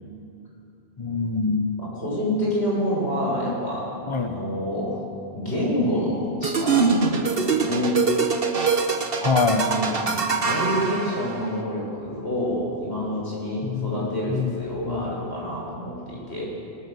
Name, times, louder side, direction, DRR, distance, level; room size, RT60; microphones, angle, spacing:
voice 1, 1.0-1.8 4.1-4.4 9.2-9.7 13.6-15.1, left 4 dB, 30° left, 6 dB, 1.1 m, -25 dB
voice 2, 1.8-3.9 4.2-5.1 5.3-8.0 9.6-16.5, equal, 80° left, -4 dB, 7.2 m, -27 dB
sound 1, 6.4-11.6, right 4 dB, 60° right, 1.5 m, -23 dB
24.5 x 18.5 x 7.1 m, 2.6 s
omnidirectional pair, 1.1 m